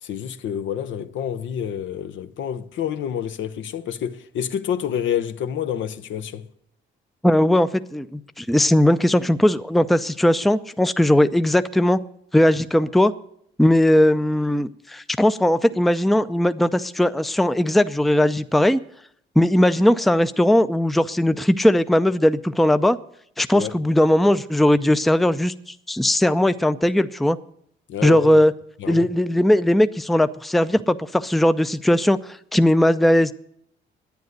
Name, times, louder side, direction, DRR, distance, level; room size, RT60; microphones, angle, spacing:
voice 1, 0.0-6.5 23.5-23.7 27.9-28.4 28.8-29.1, left 9 dB, 70° left, 0.8 m, -28 dB
voice 2, 7.2-12.0 12.3-13.1 13.6-18.8 19.4-23.0 23.4-25.5 25.9-27.4 28.0-28.5 28.9-33.3, left 1 dB, ahead, 0.5 m, -18 dB
10.5 x 9.5 x 7.9 m
cardioid pair, 90°, 20 cm